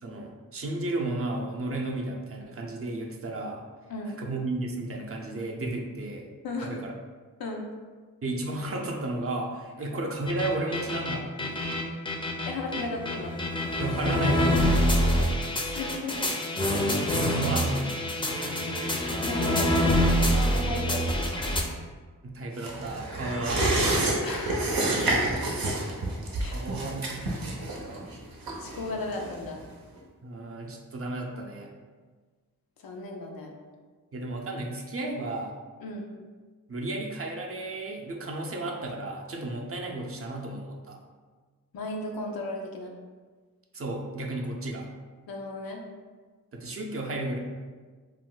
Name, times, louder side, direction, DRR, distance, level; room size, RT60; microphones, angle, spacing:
voice 1, 0.0-3.7 4.2-6.3 6.6-6.9 8.2-11.7 13.8-15.3 17.1-18.2 22.2-23.7 26.4-28.1 30.2-31.7 34.1-35.5 36.7-41.0 43.7-44.9 46.5-47.4, right 2 dB, 40° right, 1 dB, 0.5 m, -33 dB
voice 2, 3.9-4.2 6.4-6.8 7.4-7.7 9.8-9.9 12.5-13.3 15.6-16.2 19.2-19.8 20.2-21.6 24.2-24.8 26.4-26.6 28.6-29.6 32.8-33.5 35.8-36.1 41.7-42.9 45.3-45.8, left 2 dB, 90° left, 1 dB, 0.5 m, -35 dB
sound 1, 10.3-21.6, equal, 15° left, 0.4 m, -26 dB
sound 2, 22.6-29.7 30.0-30.1, right 2 dB, 85° right, 0.6 m, -29 dB
2.5 x 2.2 x 3.7 m, 1.4 s
cardioid pair, 40°, 35 cm